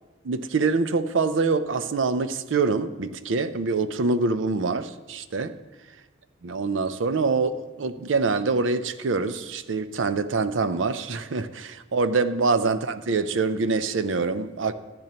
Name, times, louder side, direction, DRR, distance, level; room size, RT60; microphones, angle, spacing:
voice 1, 0.2-5.5 6.4-14.7, right 4 dB, 75° right, 12 dB, 0.5 m, -25 dB
13.5 x 10.5 x 2.9 m, 1.2 s
head